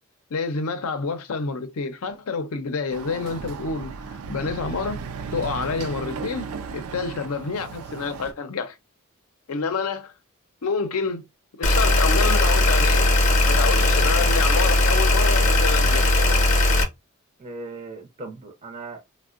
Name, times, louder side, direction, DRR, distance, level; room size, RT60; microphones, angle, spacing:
voice 1, 0.3-3.9 4.3-5.0 5.3-6.5 6.7-8.8 9.5-10.1 10.6-11.2 11.6-13.1 13.5-16.1, left 4 dB, 75° left, 0.5 m, -28 dB
Chatter / Car passing by / Motorcycle, 2.9-8.3, right 5 dB, 85° right, 0.4 m, -35 dB
sound 1, 11.6-16.8, left 2 dB, 35° left, 0.6 m, -18 dB
voice 2, 17.4-19.0, right 3 dB, 30° right, 0.5 m, -38 dB
3.4 x 2.1 x 2.4 m
head